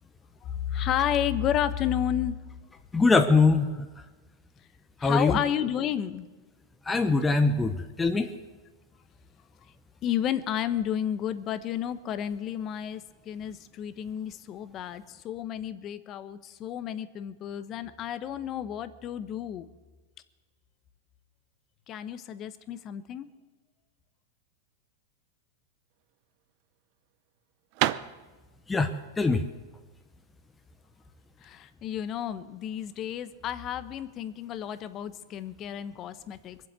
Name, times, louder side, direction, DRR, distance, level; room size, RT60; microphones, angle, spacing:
voice 1, 0.4-2.4 5.0-6.3 10.0-19.7 21.9-23.3 31.4-36.7, left 10 dB, 40° left, 13 dB, 0.9 m, -31 dB
voice 2, 2.9-3.9 5.0-5.4 6.9-8.3 28.7-28.9 29.2-29.4, left 3 dB, 15° left, 6 dB, 0.9 m, -22 dB
sound 1, 25.9-31.5, right 15 dB, 55° right, 0.6 m, -34 dB
22.0 x 7.9 x 8.2 m, 1.2 s
hypercardioid pair, 115°, 0 cm